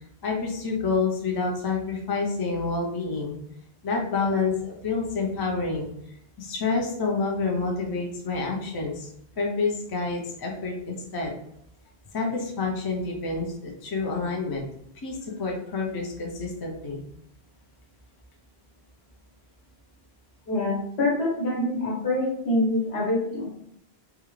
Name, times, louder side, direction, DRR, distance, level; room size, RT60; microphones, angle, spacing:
voice 1, 0.2-3.4 3.8-5.9 6.4-9.1 9.4-11.4 12.1-14.6 15.0-17.0, left 4 dB, 35° left, 0 dB, 0.3 m, -28 dB
voice 2, 20.5-23.5, left 2 dB, 75° left, -4 dB, 1.2 m, -25 dB
2.4 x 2.2 x 3.1 m, 0.72 s
omnidirectional pair, 1.1 m